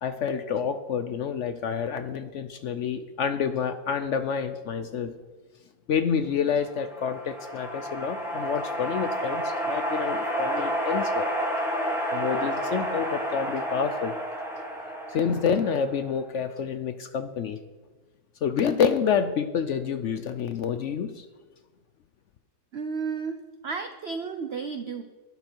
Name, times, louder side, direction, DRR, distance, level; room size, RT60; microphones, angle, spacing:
voice 1, 0.0-5.2 5.9-11.3 12.1-14.1 15.1-17.6 18.4-21.3, left 7 dB, 65° left, 10 dB, 0.7 m, -28 dB
sound 1, 6.5-16.1, equal, ahead, 3.0 m, -30 dB
voice 2, 22.7-23.4 23.6-25.0, right 5 dB, 55° right, 7 dB, 0.7 m, -32 dB
12.0 x 11.0 x 4.5 m, 1.2 s
omnidirectional pair, 1.8 m